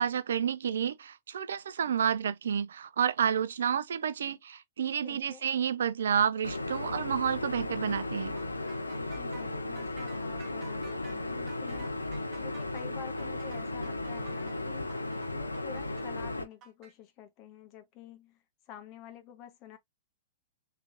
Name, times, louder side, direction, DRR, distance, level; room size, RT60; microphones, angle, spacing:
voice 1, 0.0-8.4, right 8 dB, 65° right, 0.4 m, -30 dB
voice 2, 5.0-5.4 9.0-14.9 15.3-19.8, left 10 dB, 35° left, 1.0 m, -49 dB
sound 1, 6.4-16.4, left 2 dB, 85° left, 0.6 m, -35 dB
sound 2, 8.4-16.9, right 5 dB, 30° right, 1.0 m, -54 dB
3.4 x 3.3 x 2.5 m
figure-of-eight pair, 105°, 0 cm